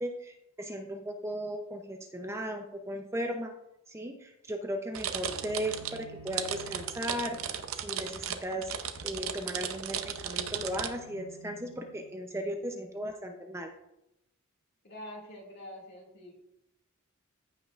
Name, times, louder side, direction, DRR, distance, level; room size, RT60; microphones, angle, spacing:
voice 1, 0.0-3.5 3.9-7.4 7.7-13.7, equal, 15° right, 4 dB, 0.6 m, -36 dB
sound 1, 4.9-10.9, right 9 dB, 75° right, 0.7 m, -36 dB
Bowed string instrument, 5.3-12.3, right 1 dB, 75° left, 3.4 m, -53 dB
voice 2, 14.8-16.3, left 1 dB, 50° left, -1 dB, 2.3 m, -45 dB
14.5 x 5.7 x 2.5 m, 0.86 s
head